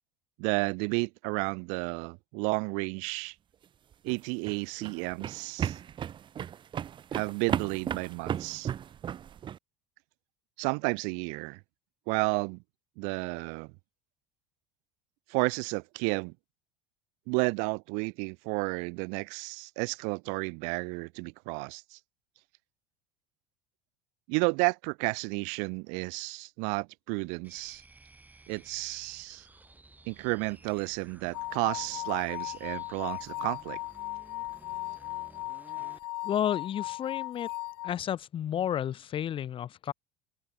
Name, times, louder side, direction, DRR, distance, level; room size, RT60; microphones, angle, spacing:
voice 1, 0.4-3.3 4.0-5.8 7.1-8.7 10.6-11.6 12.1-12.6 13.0-13.7 15.3-16.3 17.3-22.0 24.3-27.8 28.5-29.5 30.1-33.8, right 36 dB, 70° right, 1.3 m, -32 dB
sound 1, 3.9-9.6, right 9 dB, 40° right, 1.1 m, -35 dB
sound 2, 27.4-36.1, right 2 dB, 15° right, 5.2 m, -56 dB
sound 3, 31.3-37.9, left 19 dB, 85° left, 2.7 m, -37 dB
voice 2, 36.2-37.5 37.8-39.9, left 10 dB, 40° left, 1.4 m, -31 dB
hypercardioid pair, 85°, 13 cm